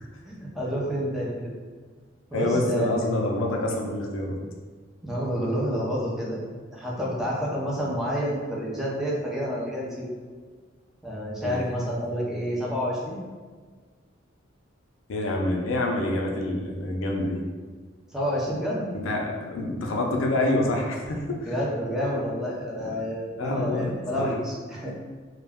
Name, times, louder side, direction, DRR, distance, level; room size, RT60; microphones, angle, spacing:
voice 1, 0.2-1.5 2.3-3.1 5.0-6.4 6.7-10.1 11.0-13.2 18.1-18.9 21.4-24.9, equal, ahead, -5 dB, 0.5 m, -29 dB
voice 2, 2.3-4.3 11.4-11.6 15.1-17.4 19.0-21.5 23.4-24.3, left 1 dB, 75° left, 1 dB, 0.4 m, -27 dB
2.2 x 2.1 x 3.4 m, 1.5 s
head